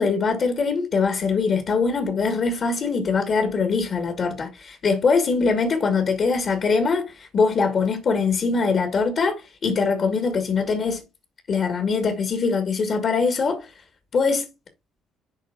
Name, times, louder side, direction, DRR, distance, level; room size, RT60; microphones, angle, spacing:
voice 1, 0.0-11.0 11.5-13.7 14.1-14.5, left 4 dB, 45° left, 1.5 m, -22 dB
11.0 x 3.9 x 2.3 m
figure-of-eight pair, 50°, 0 cm